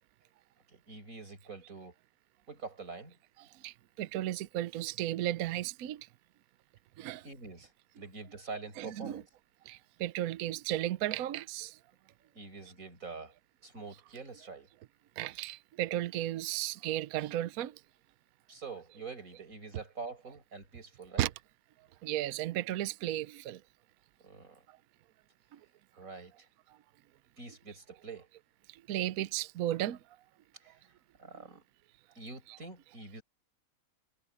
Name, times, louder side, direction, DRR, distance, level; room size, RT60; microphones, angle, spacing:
voice 1, 0.7-1.9 2.5-3.2 7.2-9.3 12.3-13.3 13.6-14.7 18.5-21.3 24.2-24.6 25.9-26.5 27.4-28.3 30.6-30.8 31.2-31.6 32.1-33.2, right 4 dB, 35° right, 6.4 m, -45 dB
voice 2, 3.6-6.1 7.0-7.2 8.8-9.2 9.7-11.8 15.2-17.8 21.2-21.3 22.0-23.6 25.5-25.6 28.7-30.0, right 13 dB, 80° right, 0.8 m, -34 dB
omnidirectional pair, 2.3 m